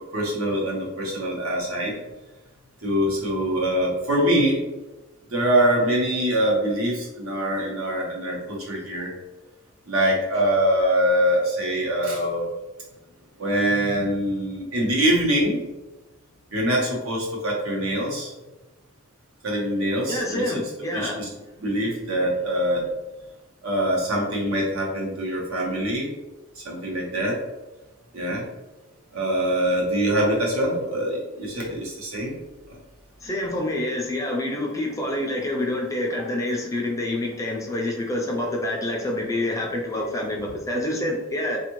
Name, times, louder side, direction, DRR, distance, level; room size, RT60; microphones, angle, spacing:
voice 1, 0.1-2.0 2.8-4.6 5.3-9.1 9.9-12.4 13.4-15.6 16.5-18.3 19.4-20.6 20.9-21.3 21.6-22.9 23.6-26.1 26.6-27.4 28.1-28.4 29.1-32.3, equal, 70° right, -3 dB, 1.1 m, -24 dB
voice 2, 20.1-21.2 33.2-41.6, left 1 dB, 15° left, -1 dB, 0.4 m, -27 dB
3.4 x 2.5 x 3.0 m, 1.1 s
head